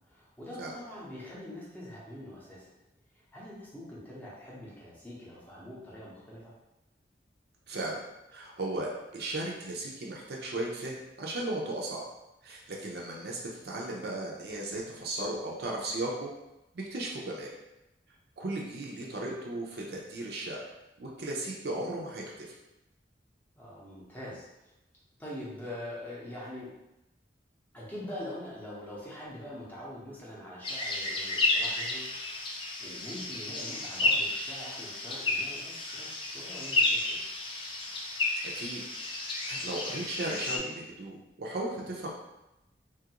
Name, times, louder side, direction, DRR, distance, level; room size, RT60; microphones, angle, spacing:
voice 1, 0.1-2.7 3.1-6.5 23.6-24.7 25.2-26.7 27.7-32.1 32.8-37.2, left 1 dB, 10° left, -7 dB, 0.7 m, -44 dB
voice 2, 7.7-8.0 8.3-12.0 12.4-13.4 13.6-16.3 16.7-17.5 18.4-20.6 21.0-22.5 38.5-38.8 39.4-42.1, right 2 dB, 60° right, -2 dB, 0.5 m, -36 dB
sound 1, 30.6-40.6, left 2 dB, 30° left, 0.3 m, -32 dB
2.7 x 2.4 x 2.8 m, 0.93 s
head